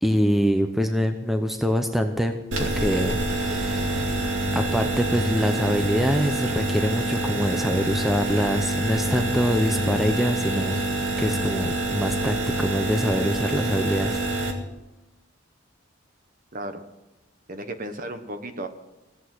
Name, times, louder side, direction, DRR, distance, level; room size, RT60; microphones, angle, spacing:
voice 1, 0.0-4.0 4.5-10.8 11.2-14.2, equal, ahead, 6 dB, 0.7 m, -25 dB
sound 1, 2.5-14.5, right 2 dB, 80° right, 2.2 m, -26 dB
voice 2, 16.5-16.8 17.5-18.7, right 1 dB, 45° right, 8 dB, 1.2 m, -34 dB
16.5 x 8.3 x 7.8 m, 1.0 s
head